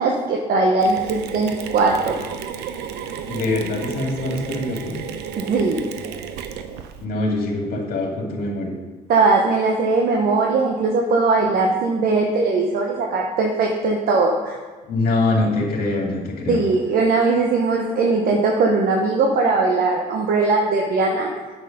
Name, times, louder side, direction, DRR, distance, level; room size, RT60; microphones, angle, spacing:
voice 1, 0.0-2.2 5.4-5.8 9.1-14.5 16.5-21.3, right 3 dB, 60° right, 1 dB, 1.0 m, -19 dB
Mechanisms, 0.8-7.0, right 7 dB, 85° right, 0.7 m, -32 dB
voice 2, 3.3-5.0 7.0-8.7 14.8-16.6, left 2 dB, 60° left, 1 dB, 2.3 m, -23 dB
8.7 x 6.5 x 5.2 m, 1.3 s
cardioid pair, 110°, 17 cm